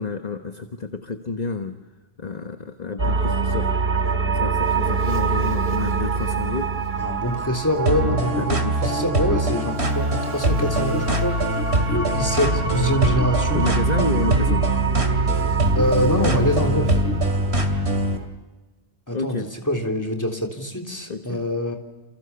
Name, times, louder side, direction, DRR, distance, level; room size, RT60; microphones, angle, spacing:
voice 1, 0.0-1.7 2.2-3.7 4.3-6.7 8.0-8.8 13.5-14.7 19.1-19.5 21.1-21.5, left 3 dB, 40° left, 6 dB, 1.5 m, -29 dB
sound 1, 3.0-18.3, right 4 dB, 70° right, 2.4 m, -25 dB
voice 2, 7.0-11.4 11.9-13.6 15.7-17.0 19.1-21.8, equal, 15° left, 5 dB, 3.4 m, -24 dB
sound 2, 7.9-18.2, right 1 dB, 90° right, 2.9 m, -23 dB
29.0 x 28.5 x 7.1 m, 1.2 s
omnidirectional pair, 1.1 m